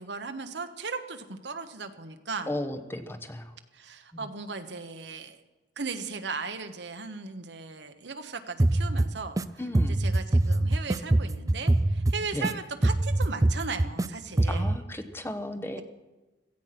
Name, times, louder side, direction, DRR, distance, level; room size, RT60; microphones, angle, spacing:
voice 1, 0.0-2.5 3.7-5.4 5.8-9.4 9.8-14.7 15.8-15.9, right 4 dB, 75° right, 8 dB, 1.3 m, -37 dB
voice 2, 2.5-3.5 4.1-4.3 9.6-10.1 12.3-12.5 14.5-15.8, left 1 dB, 15° left, 8 dB, 1.0 m, -35 dB
sound 1, 8.6-9.4 9.7-12.5 12.8-14.1 14.4-14.8, right 1 dB, 20° right, 0.4 m, -24 dB
16.0 x 15.0 x 6.0 m, 1.1 s
head